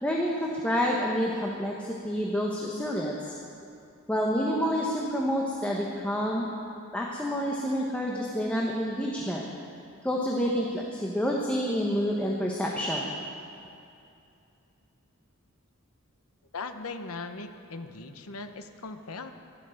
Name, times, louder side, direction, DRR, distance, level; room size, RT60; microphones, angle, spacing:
voice 1, 0.0-3.3 4.1-6.5 6.9-9.4 10.0-13.1, equal, 5° left, -3 dB, 1.1 m, -28 dB
voice 2, 16.5-19.3, left 3 dB, 75° left, 7 dB, 0.9 m, -39 dB
15.0 x 11.5 x 6.5 m, 2.6 s
head